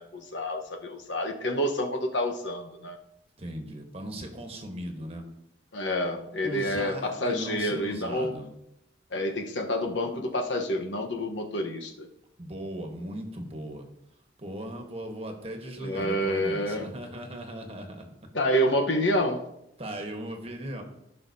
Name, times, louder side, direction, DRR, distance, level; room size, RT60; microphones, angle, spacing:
voice 1, 0.0-3.0 5.7-8.4 9.1-12.1 15.8-16.9 18.3-19.4, equal, 80° left, 3 dB, 1.1 m, -28 dB
voice 2, 3.4-5.3 6.4-8.5 12.4-13.9 14.4-18.1 19.8-20.8, right 1 dB, 30° right, 4 dB, 1.3 m, -38 dB
16.0 x 5.6 x 2.8 m, 0.82 s
head